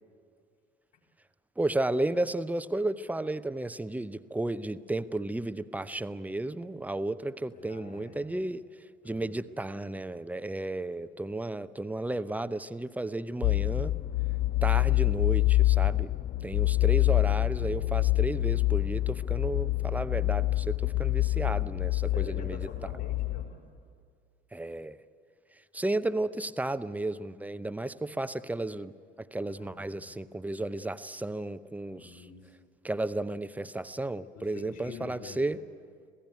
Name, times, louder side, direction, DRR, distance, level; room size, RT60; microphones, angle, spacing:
voice 1, 1.6-8.6 9.0-14.0 14.6-16.1 16.4-22.6 24.5-25.0 25.7-28.9 29.2-32.2 32.8-35.6, right 2 dB, 5° right, 14 dB, 0.7 m, -33 dB
voice 2, 7.5-8.3 9.0-9.3 16.6-17.3 21.3-21.6 22.1-23.6 29.6-30.3 31.8-32.4 34.3-35.5, left 5 dB, 55° left, 0 dB, 5.1 m, -48 dB
sound 1, 13.4-23.4, left 17 dB, 30° left, 0.7 m, -26 dB
26.5 x 17.0 x 9.3 m, 2.1 s
figure-of-eight pair, 60°, 29 cm